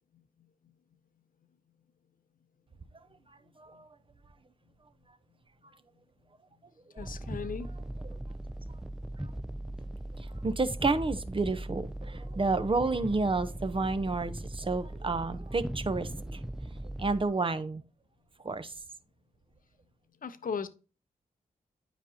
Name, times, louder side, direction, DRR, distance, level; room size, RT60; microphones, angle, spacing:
voice 1, 3.6-3.9 6.9-7.1 8.0-8.2 10.2-16.4 17.0-17.8 18.4-18.7, right 3 dB, 35° right, 0.8 m, -30 dB
voice 2, 7.0-7.7 20.2-20.7, left 6 dB, 60° left, 0.8 m, -36 dB
sound 1, 7.0-17.3, right 1 dB, 5° right, 0.4 m, -39 dB
9.1 x 5.0 x 2.8 m
cardioid pair, 55°, 16 cm